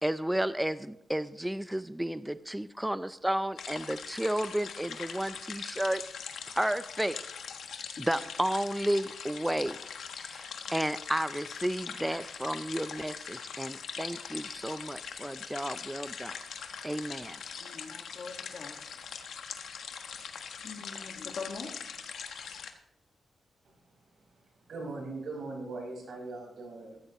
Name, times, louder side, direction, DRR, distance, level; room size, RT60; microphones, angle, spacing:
voice 1, 0.0-6.0 6.5-7.2 7.7-9.8 10.1-10.5 10.7-16.4 16.8-17.4, right 1 dB, 5° right, 13 dB, 0.5 m, -32 dB
sound 1, 3.6-22.7, left 7 dB, 90° left, 1.3 m, -42 dB
voice 2, 17.6-18.8 19.8-19.9 20.6-21.7, left 4 dB, 65° left, 0 dB, 1.7 m, -43 dB
voice 3, 24.7-27.0, right 3 dB, 80° right, 0 dB, 5.0 m, -40 dB
15.5 x 15.0 x 3.0 m, 0.78 s
cardioid pair, 90°, 0 cm